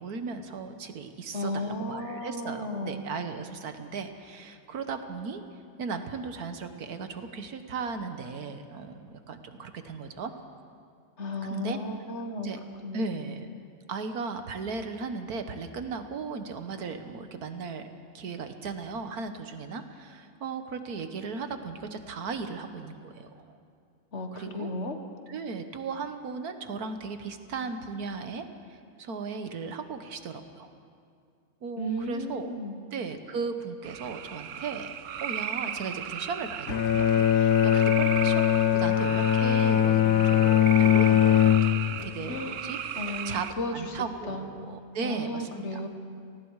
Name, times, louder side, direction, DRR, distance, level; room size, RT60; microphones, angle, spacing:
voice 1, 0.0-5.4 5.8-10.3 11.5-11.8 12.4-12.6 12.9-13.5 13.9-17.9 18.1-23.6 24.3-24.7 25.3-28.5 28.7-30.7 31.6-32.5 32.9-45.8, right 4 dB, 90° right, 8 dB, 1.7 m, -36 dB
voice 2, 1.3-3.0 11.2-12.5 12.8-13.1 24.1-25.0 31.8-32.8 42.3-42.6 43.0-44.5 45.0-45.9, left 1 dB, 50° left, 5 dB, 1.7 m, -34 dB
sound 1, 33.8-43.5, right 9 dB, 65° right, 1.0 m, -36 dB
Bowed string instrument, 36.7-42.1, left 10 dB, 90° left, 1.2 m, -21 dB
29.5 x 19.0 x 4.8 m, 2.3 s
omnidirectional pair, 1.5 m